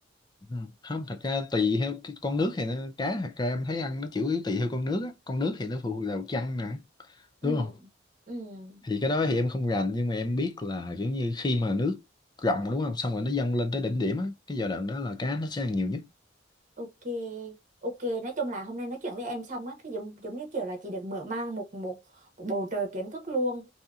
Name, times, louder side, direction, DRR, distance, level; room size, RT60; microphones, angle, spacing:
voice 1, 0.5-6.8 7.4-7.7 8.8-12.0 12.4-16.1, left 2 dB, 20° left, 0.5 m, -29 dB
voice 2, 7.4-7.7 8.3-8.8 16.8-23.7, right 1 dB, 40° right, 1.0 m, -34 dB
2.7 x 2.7 x 2.3 m
head